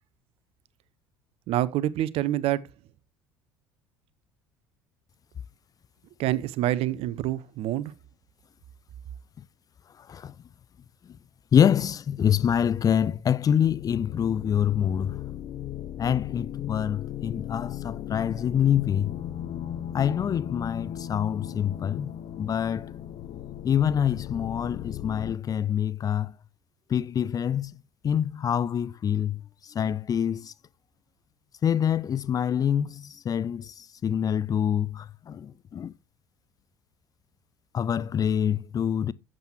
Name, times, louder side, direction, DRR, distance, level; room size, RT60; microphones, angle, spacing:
voice 1, 1.5-2.6 6.2-7.9, right 14 dB, 55° right, 0.6 m, -26 dB
voice 2, 10.0-10.3 11.5-15.2 16.0-19.1 19.9-22.9 23.6-26.3 26.9-30.5 31.6-35.9 37.7-39.1, left 9 dB, 30° left, 0.4 m, -26 dB
sound 1, 13.6-25.3, left 11 dB, 45° left, 1.1 m, -37 dB
12.0 x 7.5 x 3.0 m
figure-of-eight pair, 60°, 12 cm